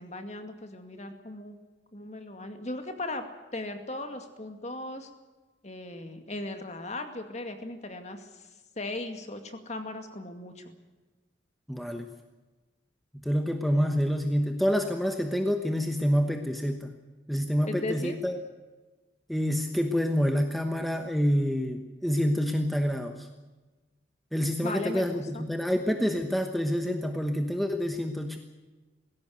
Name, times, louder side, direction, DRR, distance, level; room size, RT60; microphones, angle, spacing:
voice 1, 0.0-1.6 1.9-3.3 3.5-5.1 5.6-10.7 17.7-18.2 24.6-25.4, left 2 dB, 35° left, 6 dB, 2.2 m, -37 dB
voice 2, 11.7-12.1 13.2-16.9 17.3-18.4 19.3-23.3 24.3-28.4, equal, ahead, 5 dB, 1.1 m, -27 dB
19.5 x 16.5 x 9.4 m, 1.2 s
head